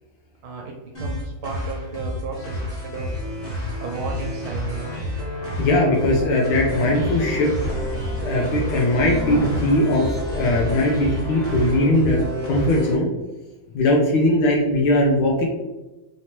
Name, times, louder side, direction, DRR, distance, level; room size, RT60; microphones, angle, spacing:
voice 1, 0.4-3.1 3.8-4.9, right 4 dB, 75° right, 1 dB, 1.4 m, -33 dB
sound 1, 0.9-12.9, equal, 30° left, 1.1 m, -30 dB
voice 2, 5.6-7.5 8.2-13.1 13.7-15.5, left 1 dB, 80° left, -1 dB, 1.6 m, -20 dB
sound 2, 6.7-11.9, equal, 40° right, 1.1 m, -32 dB
4.4 x 2.9 x 3.0 m, 1.1 s
omnidirectional pair, 2.3 m